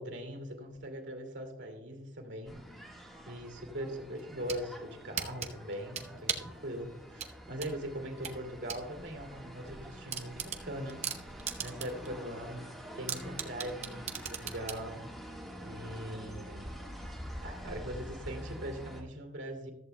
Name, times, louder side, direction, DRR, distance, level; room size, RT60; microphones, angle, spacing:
voice 1, 0.0-2.6 3.3-11.1 11.6-12.7 13.0-15.1 15.6-16.8 17.4-19.7, equal, 75° right, 4 dB, 2.3 m, -41 dB
sound 1, 2.4-19.0, equal, ahead, 1.4 m, -46 dB
sound 2, 4.2-4.6 5.2-6.6 7.2-8.8 9.2-9.3 9.7-9.8 10.1-12.1 12.4-12.5 13.1-14.8, right 7 dB, 35° right, 0.8 m, -37 dB
14.5 x 13.5 x 2.2 m, 0.87 s
head